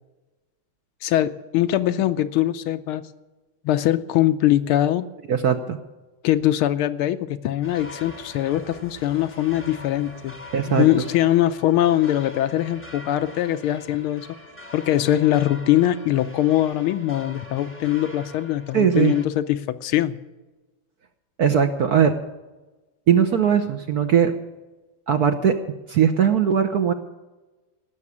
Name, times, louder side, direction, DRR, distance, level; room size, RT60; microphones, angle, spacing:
voice 1, 1.0-3.0 3.6-5.1 6.2-10.3 10.8-14.3 14.7-20.2, left 13 dB, 80° left, 12 dB, 1.6 m, -22 dB
voice 2, 5.3-5.8 10.5-10.9 18.7-19.1 21.4-22.1 23.1-24.3 25.1-25.6 25.9-26.9, right 8 dB, 65° right, 8 dB, 1.0 m, -19 dB
sound 1, 7.6-19.3, left 1 dB, 10° left, 0.6 m, -43 dB
17.0 x 6.9 x 9.7 m, 1.2 s
omnidirectional pair, 2.4 m